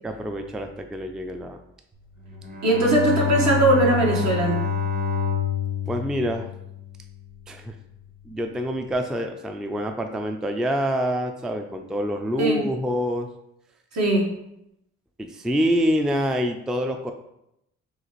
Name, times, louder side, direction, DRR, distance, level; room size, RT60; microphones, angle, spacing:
voice 1, 0.0-1.6 5.9-6.5 7.5-7.7 8.3-13.3 15.2-17.1, equal, ahead, 5 dB, 0.3 m, -26 dB
Bowed string instrument, 2.2-7.4, left 6 dB, 30° right, 0.8 m, -28 dB
voice 2, 2.6-4.6 12.4-12.6 13.9-14.3, right 1 dB, 65° right, -2 dB, 1.5 m, -20 dB
6.4 x 2.5 x 3.1 m, 0.81 s
cardioid pair, 90°, 30 cm